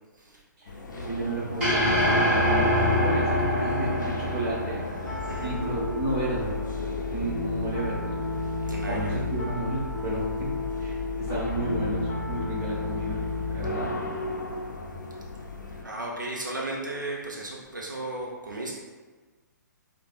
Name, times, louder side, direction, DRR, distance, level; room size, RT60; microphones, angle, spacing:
voice 1, 0.6-6.6 7.1-8.2 8.9-10.2 10.8-13.9, right 2 dB, 25° right, -7 dB, 1.2 m, -32 dB
sound 1, 0.7-15.8, left 2 dB, 75° left, 0.5 m, -38 dB
sound 2, 1.6-6.0, left 1 dB, 10° right, 1.4 m, -25 dB
Piano, 5.1-13.7, left 3 dB, 15° left, 0.8 m, -32 dB
voice 2, 8.6-9.2 15.8-18.8, right 2 dB, 80° right, -2 dB, 0.5 m, -35 dB
4.8 x 2.2 x 2.3 m, 1.3 s
figure-of-eight pair, 125°, 10 cm